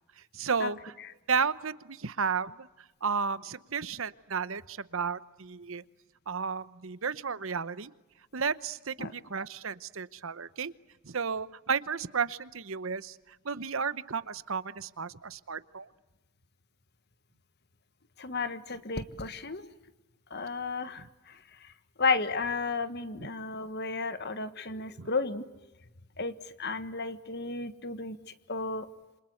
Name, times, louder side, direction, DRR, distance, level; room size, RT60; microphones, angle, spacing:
voice 1, 0.3-0.9 1.3-2.7 3.0-5.8 6.3-7.9 8.3-10.7 11.0-15.9 25.0-25.1, right 5 dB, 60° right, 16 dB, 0.9 m, -33 dB
voice 2, 18.2-19.7 20.3-21.7 22.0-25.5 26.2-28.9, left 4 dB, 50° left, 12 dB, 1.5 m, -33 dB
28.0 x 26.5 x 7.9 m, 1.1 s
head